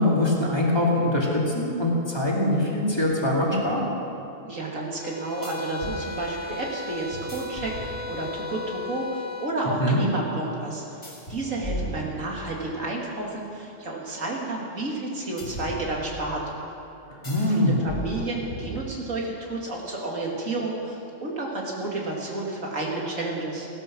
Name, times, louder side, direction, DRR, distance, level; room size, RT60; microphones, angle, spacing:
voice 1, 0.0-3.8 9.8-10.1 17.2-17.8, left 1 dB, 20° left, -4 dB, 2.5 m, -23 dB
voice 2, 4.4-11.0 11.3-16.4 17.2-23.7, right 2 dB, 80° right, -2 dB, 2.8 m, -31 dB
sound 1, 5.0-9.6, left 3 dB, 35° left, 0.6 m, -36 dB
sound 2, 5.4-6.0 7.1-8.4 11.0-12.7 15.4-16.4 17.2-17.6 17.9-19.2, equal, 50° left, 3.7 m, -37 dB
16.5 x 12.5 x 6.2 m, 2.9 s
omnidirectional pair, 1.3 m